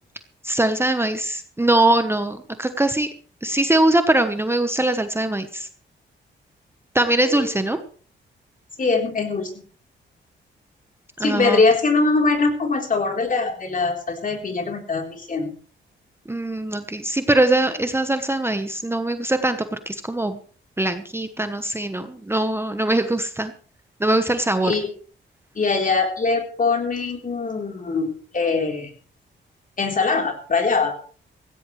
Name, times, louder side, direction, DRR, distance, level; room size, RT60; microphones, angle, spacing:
voice 1, 0.4-3.1 3.4-5.7 6.9-7.8 11.2-11.6 16.3-20.4 20.8-23.5 24.0-24.7, right 1 dB, 10° right, 8 dB, 1.1 m, -22 dB
voice 2, 8.8-9.5 11.2-15.6 24.6-24.9 25.6-28.9 29.8-30.9, left 4 dB, 40° left, 3 dB, 3.8 m, -22 dB
16.5 x 16.0 x 3.3 m, 0.43 s
cardioid pair, 90°, 20 cm